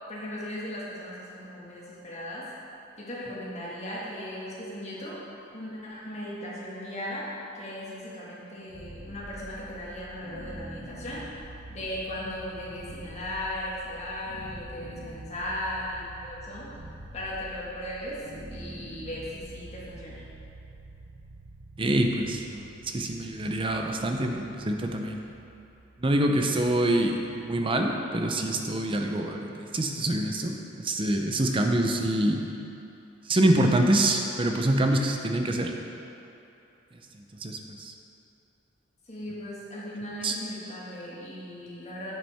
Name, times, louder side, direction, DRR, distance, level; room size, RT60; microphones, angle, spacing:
voice 1, 0.1-2.5 3.0-5.2 5.5-7.3 7.5-11.2 11.7-16.7 17.1-18.2 18.5-20.2 39.0-42.1, left 1 dB, 35° left, -7 dB, 1.7 m, -37 dB
sound 1, 8.7-27.7, right 1 dB, 75° right, 0.9 m, -46 dB
voice 2, 21.8-25.3 26.0-32.5 33.3-35.7 37.4-37.9 40.2-40.3, right 1 dB, 25° right, 3 dB, 0.5 m, -26 dB
8.1 x 7.2 x 3.5 m, 2.9 s
head